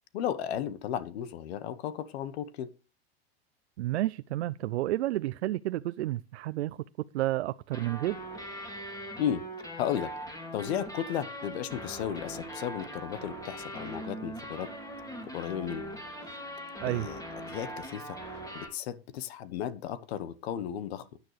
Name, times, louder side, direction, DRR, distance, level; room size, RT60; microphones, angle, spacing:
voice 1, 0.1-2.7 9.2-9.4 9.8-10.1 10.5-14.7 15.2-15.9 16.2-16.4 16.9-17.2 17.5-18.2 18.5-21.1, left 10 dB, 70° left, 1.1 m, -34 dB
voice 2, 3.8-6.8 7.1-8.2 16.8-17.1, right 15 dB, 90° right, 0.5 m, -30 dB
sound 1, 7.7-18.7, equal, 10° left, 2.8 m, -41 dB
15.0 x 9.9 x 3.2 m
hypercardioid pair, 115°, 32 cm